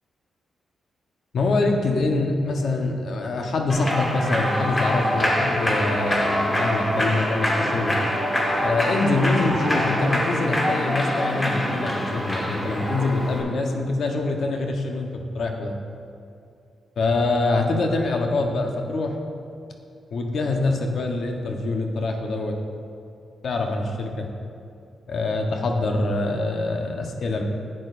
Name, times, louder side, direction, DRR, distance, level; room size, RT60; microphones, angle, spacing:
voice 1, 1.3-8.0 8.6-15.8 17.0-19.2 20.1-22.6 23.4-24.3 25.1-27.4, left 2 dB, 60° left, 3 dB, 0.8 m, -24 dB
Human voice / Clapping / Cheering, 3.7-13.4, left 1 dB, 15° left, 1.1 m, -24 dB
10.5 x 8.7 x 2.5 m, 2.5 s
wide cardioid pair, 140°, 0 cm